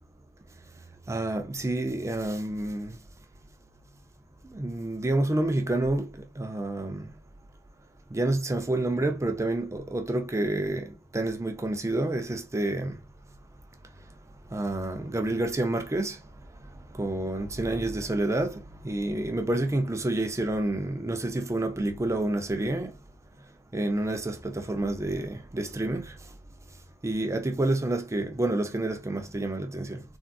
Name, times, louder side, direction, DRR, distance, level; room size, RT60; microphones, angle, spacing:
voice 1, 1.1-3.0 4.5-6.1 6.4-7.1 8.1-13.0 14.5-16.2 16.9-22.9 23.7-26.1 27.0-30.0, right 2 dB, 15° right, 0.4 m, -28 dB
3.6 x 2.3 x 2.3 m
head